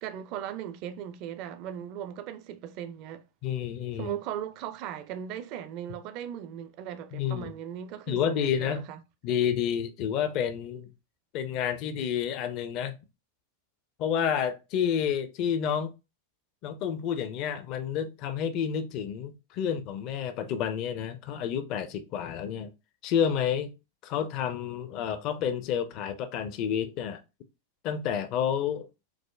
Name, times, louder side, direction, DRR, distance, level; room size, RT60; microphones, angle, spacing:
voice 1, 0.0-3.2 4.0-9.0, right 10 dB, 40° right, 0.4 m, -38 dB
voice 2, 3.4-4.1 7.1-7.5 8.1-8.8 9.2-10.9 11.3-12.9 14.0-15.9 16.6-22.7 23.0-23.7 24.0-27.2 27.8-28.9, left 8 dB, 40° left, 0.4 m, -29 dB
4.7 x 2.0 x 2.3 m
figure-of-eight pair, 90°, 0 cm